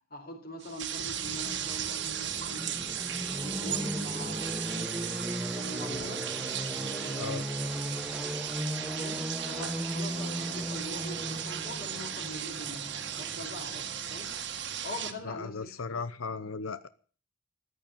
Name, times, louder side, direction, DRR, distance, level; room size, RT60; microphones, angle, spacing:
voice 1, 0.1-2.8 3.4-5.2 5.6-6.3 6.8-7.4 8.9-12.8 13.2-14.3 14.8-16.5, left 1 dB, 45° left, 2 dB, 4.1 m, -43 dB
sound 1, 0.6-15.1, right 9 dB, 55° right, 1.8 m, -36 dB
sound 2, 0.9-14.8, equal, 5° right, 1.1 m, -38 dB
voice 2, 15.2-16.9, left 4 dB, 80° left, 14 dB, 0.8 m, -36 dB
14.5 x 9.8 x 8.9 m, 0.42 s
head